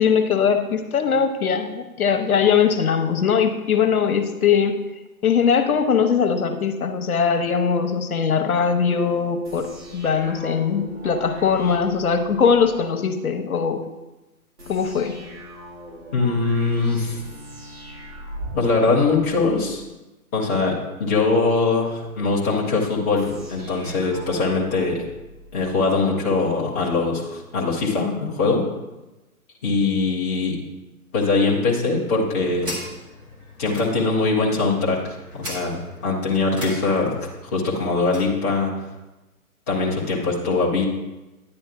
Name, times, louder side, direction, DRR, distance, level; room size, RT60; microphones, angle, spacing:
voice 1, 0.0-4.7 5.2-13.8 14.7-15.1, left 6 dB, 70° left, 6 dB, 1.0 m, -20 dB
sound 1, 9.4-12.7 14.6-19.8 23.1-25.8, equal, 85° right, 2.7 m, -40 dB
voice 2, 16.1-17.2 18.6-19.8 20.3-25.1 25.5-28.6 29.6-30.6 31.1-32.7 33.6-38.7 39.7-40.9, left 3 dB, 10° left, -6 dB, 0.5 m, -22 dB
sound 2, 31.9-38.4, left 1 dB, 10° right, 0.9 m, -39 dB
10.0 x 8.8 x 2.4 m, 1.0 s
figure-of-eight pair, 135°, 44 cm